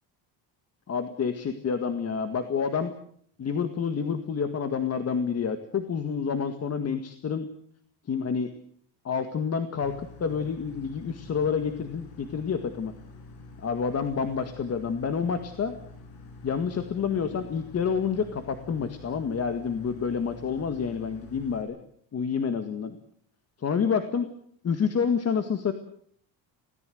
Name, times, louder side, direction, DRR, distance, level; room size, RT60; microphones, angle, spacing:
voice 1, 0.9-2.9 3.4-7.5 8.1-8.5 9.0-9.9 10.2-12.9 13.6-15.7 16.4-21.8 22.1-23.0 23.6-24.3 24.6-25.7, left 6 dB, 35° left, 8 dB, 1.9 m, -28 dB
sound 1, 9.8-21.6, left 2 dB, 85° left, 7.1 m, -47 dB
26.5 x 18.0 x 7.8 m, 0.63 s
cardioid pair, 145°, 44 cm